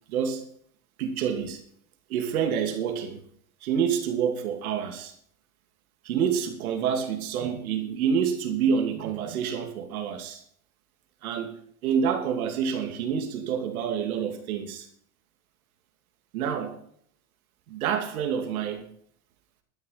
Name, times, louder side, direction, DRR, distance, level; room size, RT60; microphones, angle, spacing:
voice 1, 0.1-0.4 1.0-1.6 2.1-3.2 3.6-5.1 6.0-10.4 11.2-11.6 11.8-14.9 16.3-16.8 17.7-18.9, right 7 dB, 85° right, 4 dB, 2.8 m, -27 dB
12.5 x 10.5 x 6.0 m, 0.64 s
supercardioid pair, 120°, 42 cm